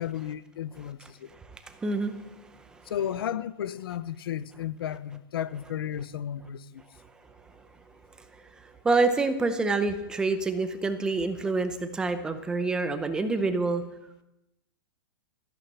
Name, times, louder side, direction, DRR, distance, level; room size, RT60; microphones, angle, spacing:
voice 1, 0.0-1.3 2.9-6.8, left 10 dB, 85° left, 0.8 m, -33 dB
voice 2, 1.3-2.2 8.6-13.8, right 3 dB, 5° right, 0.7 m, -27 dB
14.0 x 11.5 x 7.3 m
supercardioid pair, 180°, 12 cm